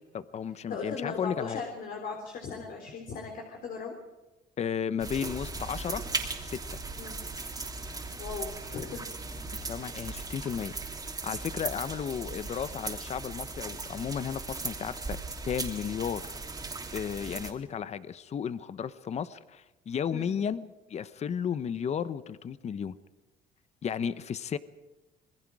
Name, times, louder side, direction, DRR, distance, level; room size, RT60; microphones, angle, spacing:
voice 1, 0.1-1.6 4.6-6.0 6.4-6.8 9.7-10.8 11.2-15.2 15.5-16.4 16.9-23.0 23.8-24.6, left 7 dB, 40° left, 14 dB, 0.9 m, -34 dB
voice 2, 0.7-4.0 7.0-7.3 8.2-9.1 9.8-9.9 17.3-17.4 20.1-20.3, left 5 dB, 55° left, 2 dB, 3.7 m, -38 dB
sound 1, 5.0-17.5, right 3 dB, 20° right, 3.2 m, -38 dB
27.0 x 21.0 x 4.9 m, 1.1 s
cardioid pair, 110°, 17 cm